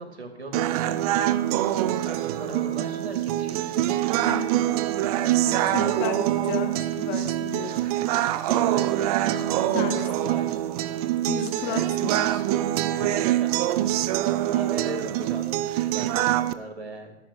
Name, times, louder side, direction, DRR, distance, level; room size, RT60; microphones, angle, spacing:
voice 1, 0.0-1.4 2.0-4.0 5.5-5.8 7.6-7.9 8.5-10.6 11.7-11.9 12.9-13.8 14.2-17.2, right 2 dB, 75° right, 4 dB, 2.9 m, -39 dB
sound 1, 0.5-16.5, right 13 dB, 35° right, 0.7 m, -25 dB
voice 2, 4.2-4.9 5.4-7.8 9.7-10.3 11.2-12.4, left 7 dB, 30° left, 5 dB, 1.5 m, -34 dB
25.0 x 11.0 x 2.7 m, 1.1 s
figure-of-eight pair, 105°, 32 cm